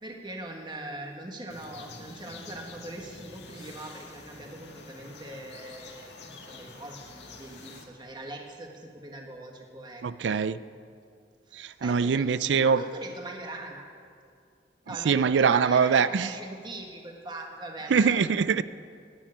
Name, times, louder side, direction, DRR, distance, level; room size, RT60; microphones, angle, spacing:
voice 1, 0.0-10.4 11.5-12.3 12.5-13.9 14.9-18.2, right 2 dB, 25° right, 1 dB, 1.5 m, -41 dB
sound 1, 1.5-7.8, left 3 dB, 75° left, 1.9 m, -47 dB
voice 2, 10.0-10.6 11.5-12.8 15.0-16.3 17.9-18.6, right 6 dB, 85° right, 16 dB, 0.4 m, -23 dB
16.5 x 7.4 x 9.8 m, 2.3 s
head